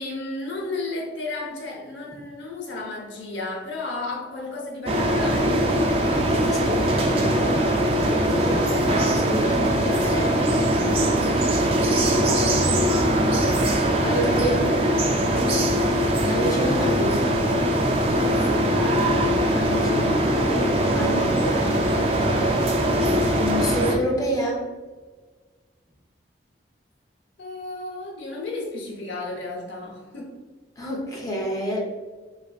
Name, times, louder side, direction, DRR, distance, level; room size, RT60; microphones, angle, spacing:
voice 1, 0.0-5.6 14.0-14.7 18.4-18.7 27.4-30.3, left 2 dB, 85° left, -1 dB, 0.8 m, -33 dB
sound 1, 4.9-23.9, right 1 dB, 30° right, 0.3 m, -21 dB
voice 2, 6.1-7.7 8.1-10.4 14.0-14.7 16.3-17.2 19.5-20.7 20.9-21.9 23.4-24.6 30.8-31.8, equal, 20° left, -3 dB, 0.5 m, -29 dB
3.3 x 2.5 x 2.3 m, 1.4 s
head